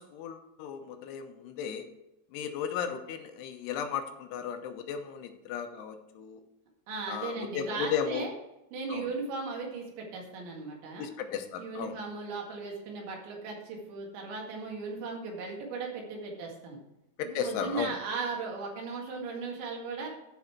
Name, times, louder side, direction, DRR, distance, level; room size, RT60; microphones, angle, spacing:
voice 1, 0.0-1.8 2.3-6.4 7.1-8.3 8.9-9.1 11.0-12.0 17.2-17.9, left 8 dB, 80° left, 6 dB, 2.8 m, -35 dB
voice 2, 6.9-8.3 8.7-11.1 11.6-16.8 17.2-20.1, right 4 dB, 90° right, 0 dB, 4.2 m, -37 dB
12.0 x 5.4 x 4.6 m, 0.91 s
omnidirectional pair, 5.0 m